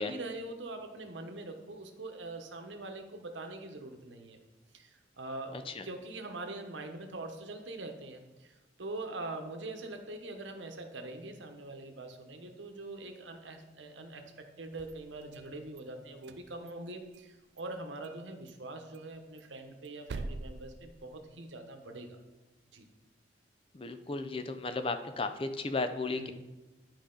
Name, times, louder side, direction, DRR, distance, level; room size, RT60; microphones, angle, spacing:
voice 1, 0.0-4.4 4.7-22.2 22.7-22.9 26.1-26.3, right 2 dB, 85° right, 5 dB, 1.0 m, -43 dB
voice 2, 5.5-5.8 23.7-26.3, left 3 dB, 30° left, 9 dB, 0.5 m, -34 dB
sound 1, 14.6-15.8 16.2-17.3 17.6-17.7 18.0-18.2 18.5-18.6 18.9-21.5, right 3 dB, 65° right, 0.5 m, -45 dB
11.0 x 4.9 x 3.8 m, 1.1 s
head